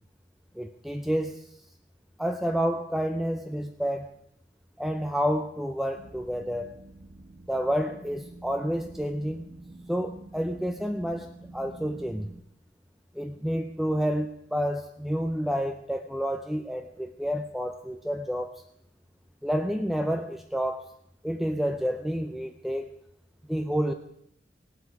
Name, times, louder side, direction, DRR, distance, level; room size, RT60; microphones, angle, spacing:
voice 1, 0.6-1.5 2.2-4.1 4.8-6.7 7.5-9.5 9.9-12.3 13.1-18.5 19.4-20.9 21.2-22.9 23.5-23.9, equal, ahead, 5 dB, 0.5 m, -29 dB
sound 1, 6.0-12.4, right 2 dB, 60° right, 1.1 m, -47 dB
18.5 x 8.0 x 4.8 m, 0.73 s
head